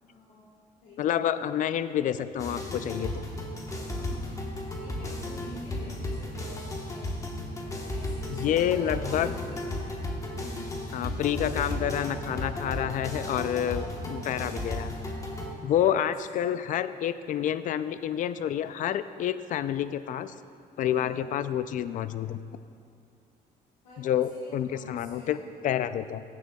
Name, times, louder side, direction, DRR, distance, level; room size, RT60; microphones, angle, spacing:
voice 1, 0.0-0.5 0.8-1.0 3.9-4.4 4.8-9.6 10.3-10.7 16.2-16.6 20.9-21.2 23.8-25.4, equal, 85° left, -8 dB, 1.6 m, -48 dB
voice 2, 1.0-3.1 8.3-9.4 10.9-14.9 15.6-20.3 20.8-22.4 24.0-26.2, left 10 dB, 50° left, 13 dB, 0.4 m, -28 dB
sound 1, 2.4-15.5, left 1 dB, 20° left, 1.1 m, -34 dB
15.0 x 7.3 x 2.3 m, 2.3 s
cardioid pair, 110°, 17 cm